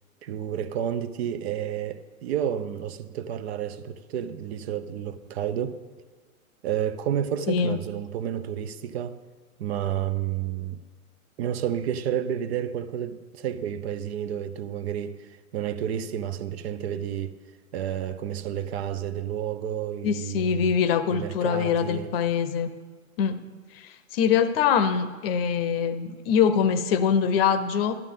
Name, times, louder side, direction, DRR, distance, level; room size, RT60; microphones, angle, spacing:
voice 1, 0.2-5.8 6.6-9.2 9.6-10.8 11.4-17.4 17.7-20.7 21.1-22.1, right 9 dB, 50° right, 0.7 m, -30 dB
voice 2, 7.5-7.8 20.0-22.7 23.2-23.4 23.7-27.9, left 7 dB, 45° left, 0.7 m, -23 dB
12.0 x 11.5 x 3.7 m
hypercardioid pair, 115°, 41 cm